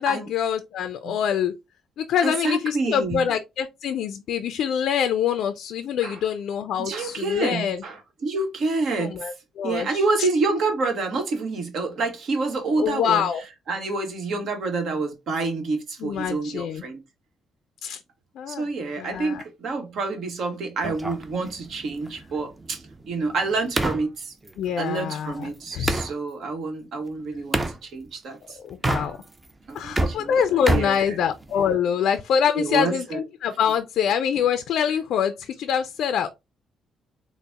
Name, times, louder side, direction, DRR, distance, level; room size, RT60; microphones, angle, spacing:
voice 1, 0.0-1.5 2.0-7.8 8.9-10.3 12.8-13.4 16.0-16.8 17.8-18.0 18.4-18.7 19.0-19.4 24.6-26.0 28.6-29.2 29.7-36.3, left 8 dB, 75° left, 0.3 m, -25 dB
voice 2, 2.2-3.2 6.0-6.2 6.8-9.3 9.6-13.3 13.7-17.0 18.5-24.3 24.8-28.6 29.7-30.3 30.7-31.2 32.6-33.2, right 3 dB, 65° right, 1.0 m, -28 dB
sound 1, 20.8-26.1 27.5-27.8 28.7-29.5 29.8-31.7, right 2 dB, 20° right, 0.6 m, -29 dB
3.9 x 2.0 x 3.3 m
cardioid pair, 90°, 0 cm